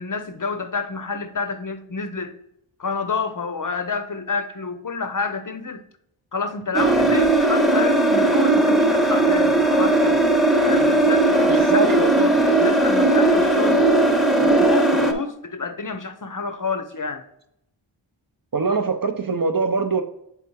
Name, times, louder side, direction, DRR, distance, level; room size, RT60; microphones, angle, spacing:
voice 1, 0.0-2.3 2.8-5.8 6.3-10.2 10.7-13.8 14.4-17.2, left 4 dB, 40° left, 0.6 m, -29 dB
sound 1, 6.7-15.1, right 2 dB, ahead, 0.8 m, -18 dB
voice 2, 11.5-12.1 18.5-20.0, right 4 dB, 45° right, 0.6 m, -23 dB
7.1 x 3.4 x 4.6 m
wide cardioid pair, 60°, 49 cm